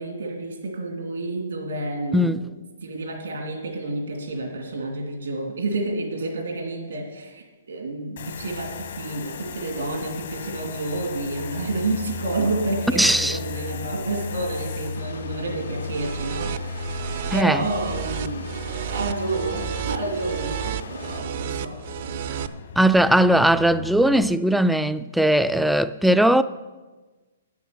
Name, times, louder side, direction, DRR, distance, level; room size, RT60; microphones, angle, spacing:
voice 1, 0.0-2.5 2.8-16.8 17.3-22.5 23.2-24.3, right 2 dB, 85° right, 2.6 m, -30 dB
voice 2, 2.1-2.4 13.0-13.4 17.3-17.6 22.8-26.4, right 1 dB, ahead, 0.4 m, -19 dB
sound 1, 8.2-24.2, left 4 dB, 65° left, 1.4 m, -36 dB
sound 2, 14.9-21.2, left 4 dB, 85° left, 2.6 m, -41 dB
sound 3, 15.8-22.5, right 11 dB, 50° right, 0.5 m, -32 dB
9.4 x 8.7 x 6.8 m
hypercardioid pair, 140°, 0 cm